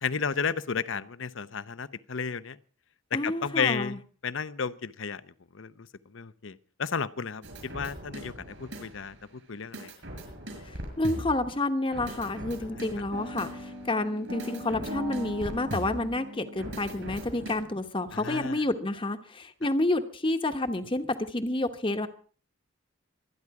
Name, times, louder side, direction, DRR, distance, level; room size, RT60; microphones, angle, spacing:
voice 1, 0.0-2.6 3.2-5.2 5.5-9.9 12.7-12.8 18.1-18.6, left 6 dB, 75° left, 15 dB, 0.7 m, -33 dB
voice 2, 3.1-4.0 10.6-22.1, left 2 dB, 25° left, 7 dB, 1.0 m, -29 dB
sound 1, 7.4-9.2 9.7-11.5 11.9-17.5, equal, 70° right, 6.2 m, -39 dB
24.5 x 9.8 x 4.8 m, 0.42 s
head